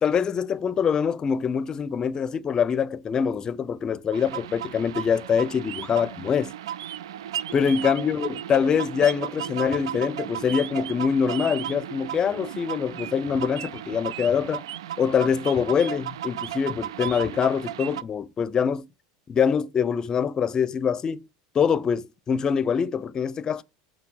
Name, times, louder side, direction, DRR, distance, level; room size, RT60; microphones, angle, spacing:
voice 1, 0.0-6.5 7.5-14.6 15.0-18.9 19.3-21.3 21.5-23.6, left 7 dB, 30° left, 0.5 m, -24 dB
sound 1, 4.1-18.0, right 11 dB, 90° right, 0.4 m, -35 dB
8.5 x 4.1 x 6.4 m
supercardioid pair, 115°, 3 cm